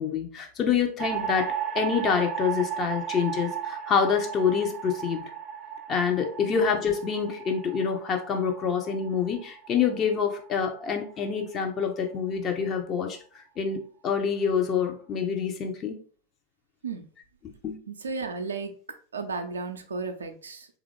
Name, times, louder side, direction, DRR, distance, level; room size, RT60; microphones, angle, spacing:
voice 1, 0.0-5.2 5.9-13.2 13.6-16.0 17.6-17.8, left 6 dB, 30° left, 0.7 m, -26 dB
sound 1, 1.0-11.3, right 8 dB, 15° right, 0.6 m, -35 dB
voice 2, 17.9-18.8 19.1-20.7, right 4 dB, 70° right, 0.5 m, -34 dB
3.6 x 2.4 x 3.3 m
figure-of-eight pair, 90°, 0 cm